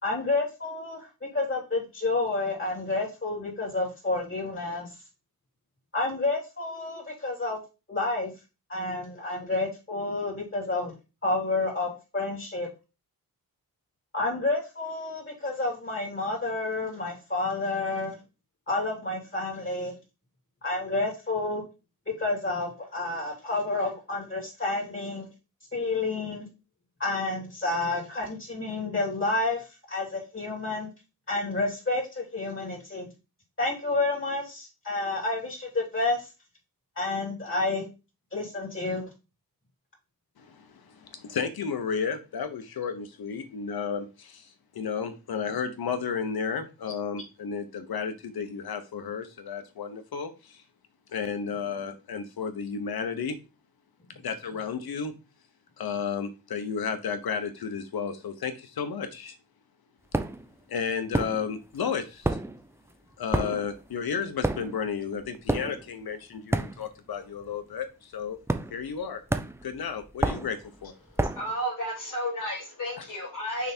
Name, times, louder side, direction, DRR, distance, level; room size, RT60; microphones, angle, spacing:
voice 1, 0.0-4.9 5.9-7.6 7.9-8.3 8.7-10.9 11.2-12.7 14.1-18.2 18.7-19.9 20.6-21.6 22.1-25.3 25.7-26.4 27.0-30.9 31.3-33.1 33.6-36.3 37.0-37.9 38.3-39.1, left 2 dB, 35° left, 2.9 m, -30 dB
voice 2, 40.4-44.5 44.7-50.6 51.1-53.4 54.2-55.1 55.8-59.3 60.7-62.4 63.2-68.4 68.7-69.2 69.6-70.9, left 6 dB, 85° left, 1.1 m, -33 dB
sound 1, 60.1-60.5 61.1-61.8 62.0-67.2 67.4-67.7 68.5-69.0 69.3-71.5, right 2 dB, 5° right, 0.5 m, -30 dB
voice 3, 71.3-73.7, equal, 60° left, 2.7 m, -32 dB
6.2 x 3.5 x 4.4 m
wide cardioid pair, 120°, 36 cm